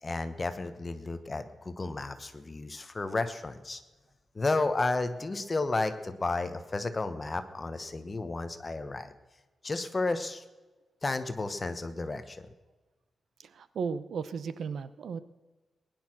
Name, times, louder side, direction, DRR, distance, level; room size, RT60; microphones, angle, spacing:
voice 1, 0.0-3.8 4.3-9.1 9.6-10.4 11.0-12.5, left 3 dB, 25° left, 10 dB, 1.1 m, -32 dB
voice 2, 13.4-15.2, right 6 dB, 70° right, 14 dB, 0.8 m, -35 dB
20.0 x 11.0 x 6.2 m, 1.2 s
wide cardioid pair, 155°, 0 cm